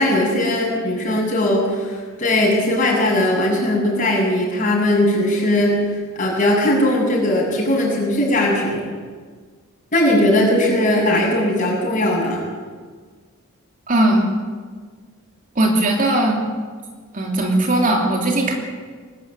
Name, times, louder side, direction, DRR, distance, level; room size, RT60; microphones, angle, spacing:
voice 1, 0.0-5.8 6.1-8.8 9.9-12.4, left 1 dB, 40° left, -2 dB, 7.6 m, -19 dB
voice 2, 13.9-14.4 15.5-16.4 17.1-18.5, right 1 dB, 40° right, 1 dB, 2.9 m, -18 dB
21.0 x 13.0 x 9.7 m, 1.5 s
head